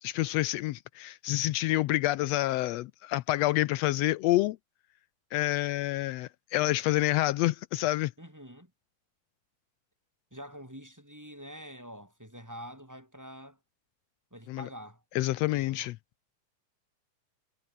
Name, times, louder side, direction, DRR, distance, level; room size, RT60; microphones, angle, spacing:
voice 1, 0.0-4.6 5.3-8.1 14.5-14.7 15.1-16.0, left 16 dB, 90° left, 1.4 m, -28 dB
voice 2, 8.2-8.7 10.3-13.6 14.3-15.8, equal, 5° right, 5.3 m, -46 dB
omnidirectional pair, 3.6 m